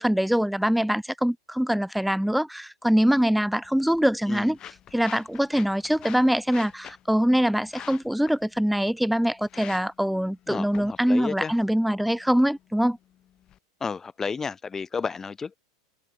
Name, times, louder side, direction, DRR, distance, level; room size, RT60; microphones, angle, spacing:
voice 1, 0.0-4.6 4.9-13.0, equal, ahead, 0.9 m, -23 dB
sound 1, 3.6-13.6, left 11 dB, 35° left, 6.9 m, -48 dB
voice 2, 4.3-4.6 10.5-11.6 13.8-15.6, left 5 dB, 20° left, 1.6 m, -32 dB
hypercardioid pair, 95°, 2 cm